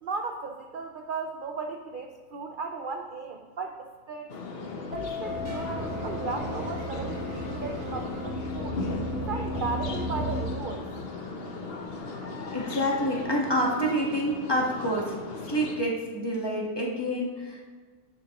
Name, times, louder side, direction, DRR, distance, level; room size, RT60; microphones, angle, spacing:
voice 1, 0.0-4.3 4.9-8.8 9.3-10.9, right 4 dB, 70° right, 4 dB, 0.5 m, -36 dB
sound 1, 4.3-15.8, left 3 dB, 50° left, 0.9 m, -37 dB
sound 2, 4.9-12.5 12.8-13.3, left 6 dB, 80° left, 1.1 m, -42 dB
sound 3, 5.2-10.5, equal, 20° right, 1.3 m, -34 dB
voice 2, 12.5-15.1 15.5-17.6, equal, 20° left, -2 dB, 1.3 m, -27 dB
10.5 x 6.6 x 2.9 m, 1.5 s
omnidirectional pair, 1.5 m